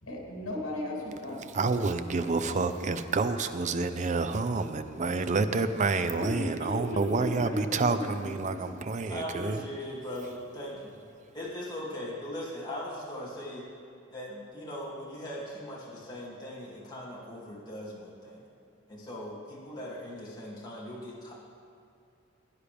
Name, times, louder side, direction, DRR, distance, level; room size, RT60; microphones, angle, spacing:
voice 1, 0.0-1.5 6.2-7.9 8.4-8.5 9.5-9.6, left 1 dB, 75° left, -2 dB, 2.7 m, -35 dB
voice 2, 1.5-9.6, right 3 dB, 35° right, 10 dB, 0.5 m, -28 dB
voice 3, 7.4-7.8 8.5-8.6 9.1-11.0 11.3-13.7 14.1-18.4 18.9-21.3, left 1 dB, 20° left, -6 dB, 2.4 m, -40 dB
16.0 x 10.0 x 3.4 m, 2.5 s
head